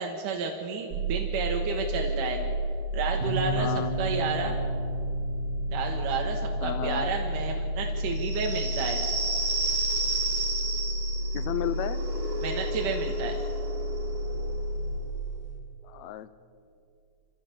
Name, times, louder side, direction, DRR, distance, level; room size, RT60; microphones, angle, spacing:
voice 1, 0.0-2.4 2.9-4.6 5.7-9.0 12.4-13.3, right 4 dB, 75° right, 1 dB, 3.0 m, -31 dB
sound 1, 0.9-15.0, equal, 50° right, 1.5 m, -31 dB
sound 2, 3.2-12.6, right 4 dB, 90° right, 4.2 m, -39 dB
voice 2, 3.6-4.0 6.6-7.1 11.3-12.0 15.8-16.3, left 13 dB, 85° left, 12 dB, 1.6 m, -33 dB
sound 3, 8.2-15.4, right 3 dB, 25° right, 3.8 m, -33 dB
25.5 x 16.0 x 6.8 m, 2.5 s
omnidirectional pair, 3.9 m